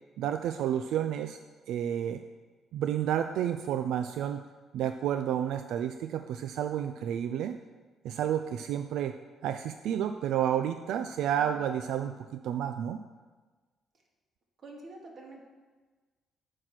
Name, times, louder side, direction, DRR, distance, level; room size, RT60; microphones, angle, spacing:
voice 1, 0.2-1.4 1.7-2.2 2.7-4.5 4.7-7.6 8.0-13.0, right 10 dB, 80° right, 8 dB, 0.4 m, -31 dB
voice 2, 14.6-15.4, right 2 dB, 45° right, 0 dB, 1.9 m, -47 dB
9.1 x 6.4 x 5.9 m, 1.3 s
cardioid pair, 140°, 0 cm